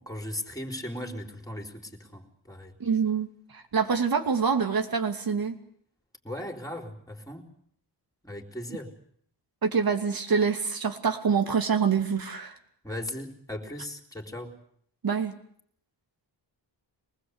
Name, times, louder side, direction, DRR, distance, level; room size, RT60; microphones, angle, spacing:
voice 1, 0.0-2.7 6.2-7.5 8.2-9.0 12.8-14.6, left 1 dB, 10° left, 4 dB, 4.1 m, -37 dB
voice 2, 2.8-5.6 9.6-12.6 15.0-15.4, right 6 dB, 55° right, 5 dB, 2.7 m, -26 dB
24.5 x 20.0 x 8.2 m, 0.65 s
cardioid pair, 90°, 43 cm